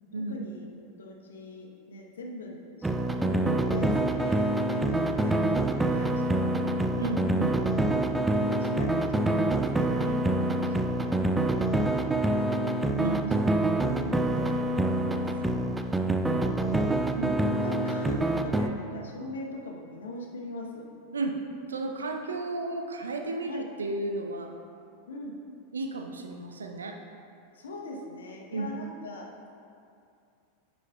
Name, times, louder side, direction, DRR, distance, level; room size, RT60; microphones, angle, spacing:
voice 1, 0.3-0.7 1.0-6.1 6.4-6.8 8.2-9.5 9.8-12.9 13.8-15.7 16.2-20.9 23.5-23.6 25.1-25.4 27.5-29.5, left 2 dB, 70° left, 0 dB, 1.0 m, -42 dB
sound 1, 2.8-18.7, right 1 dB, 10° right, 0.4 m, -26 dB
voice 2, 7.0-7.6 12.9-13.4 17.1-17.3 21.1-21.3 21.7-24.5 25.7-26.9 28.5-28.7, right 3 dB, 75° right, 4 dB, 0.6 m, -33 dB
9.8 x 7.5 x 2.4 m, 2.5 s
figure-of-eight pair, 85°, 0 cm